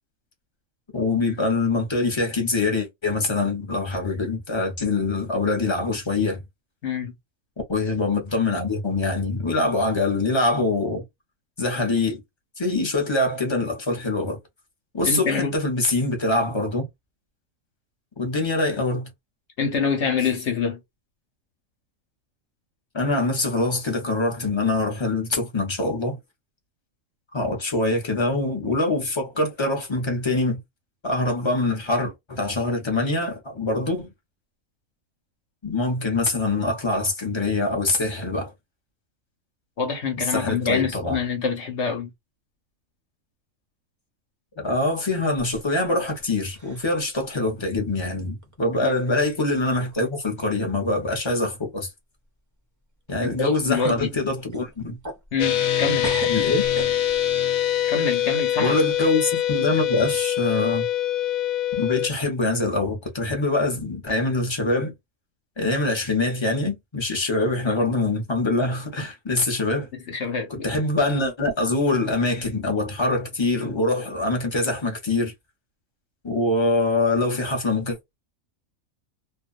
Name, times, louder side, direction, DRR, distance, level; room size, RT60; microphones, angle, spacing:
voice 1, 0.9-6.4 7.7-11.0 11.6-12.2 12.6-14.4 14.9-16.9 18.2-19.1 22.9-26.2 27.3-30.6 31.0-34.1 35.6-38.5 40.3-41.2 44.6-51.9 53.1-55.0 56.3-56.6 58.6-60.9 61.8-64.9 65.6-69.9 70.5-75.3 76.2-78.2, left 2 dB, 25° left, 0.7 m, -24 dB
voice 2, 6.8-7.1 15.0-15.5 19.6-20.8 39.8-42.1 48.8-49.0 53.2-54.1 55.3-56.1 57.8-58.8 69.9-70.7, left 5 dB, 60° left, 1.1 m, -26 dB
sound 1, 45.4-46.3 46.5-47.0 47.5-47.6 48.4-48.5 49.3-49.4 49.8-50.2 50.4-50.6 53.1-53.2 53.5-54.0 54.5-55.8 56.0-57.3, right 2 dB, 25° right, 0.4 m, -36 dB
sound 2, 55.4-62.1, left 11 dB, 90° left, 1.0 m, -24 dB
2.5 x 2.2 x 2.4 m
omnidirectional pair, 1.4 m